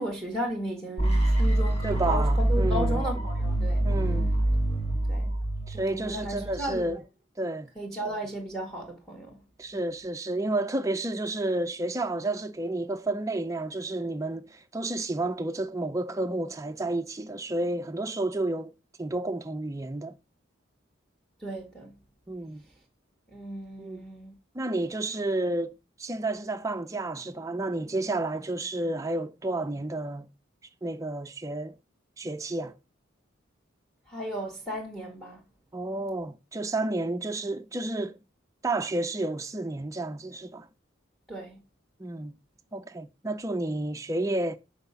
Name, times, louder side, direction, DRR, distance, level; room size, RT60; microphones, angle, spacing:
voice 1, 0.0-3.8 5.1-5.3 5.7-7.0 7.7-9.4 21.4-21.9 23.3-24.3 34.1-35.4 41.3-41.6, equal, 5° left, 1.5 m, -35 dB
sound 1, 1.0-6.9, right 1 dB, 30° left, 1.3 m, -26 dB
voice 2, 1.8-3.0 3.8-4.3 5.7-7.0 7.4-7.7 9.6-18.7 19.0-20.1 22.3-22.6 23.8-24.0 24.5-25.7 26.0-30.3 30.8-31.7 32.2-32.7 35.7-38.2 38.6-40.7 42.0-42.4 42.7-44.6, right 2 dB, 15° right, 0.5 m, -31 dB
6.0 x 4.8 x 5.6 m
head